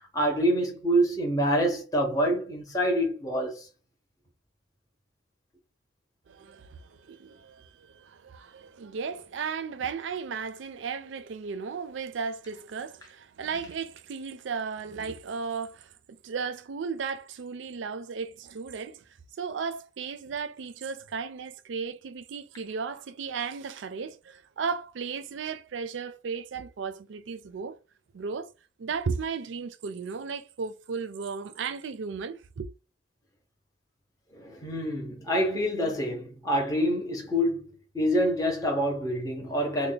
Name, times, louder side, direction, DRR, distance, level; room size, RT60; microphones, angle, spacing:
voice 1, 0.1-3.7 34.3-37.7 37.9-39.9, equal, 20° left, 0.7 m, -26 dB
voice 2, 6.3-19.0 19.4-27.8 28.1-28.5 28.8-32.7, right 5 dB, 75° right, 0.4 m, -35 dB
3.3 x 2.1 x 3.8 m
head